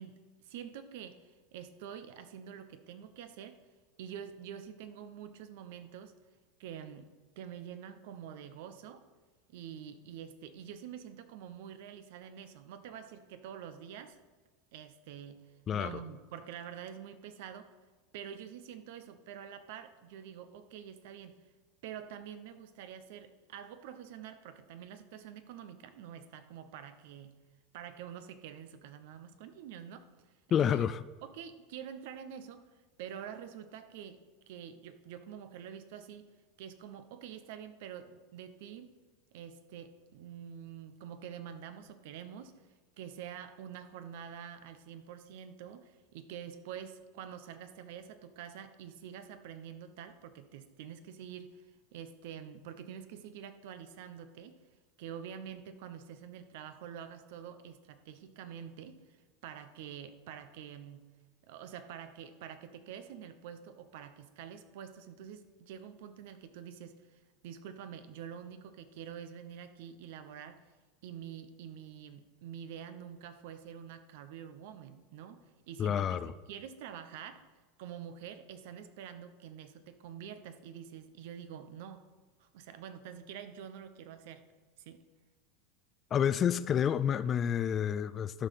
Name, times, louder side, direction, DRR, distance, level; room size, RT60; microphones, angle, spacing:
voice 1, 0.0-3.6 4.0-6.1 6.6-9.1 9.5-14.2 14.7-15.4 15.7-17.7 18.1-21.4 21.8-27.3 27.7-30.1 30.6-30.8 31.2-32.7 33.0-34.2 34.5-36.3 36.6-39.0 39.3-42.5 43.0-54.6 55.0-59.0 59.4-61.1 61.5-70.6 71.0-77.4 77.8-82.0 82.4-84.4 84.8-85.0, right 8 dB, 70° right, 0.8 m, -47 dB
voice 2, 30.5-31.0 75.8-76.3 86.1-88.5, left 9 dB, 35° left, 0.4 m, -29 dB
13.0 x 5.2 x 5.8 m
supercardioid pair, 115°, 0 cm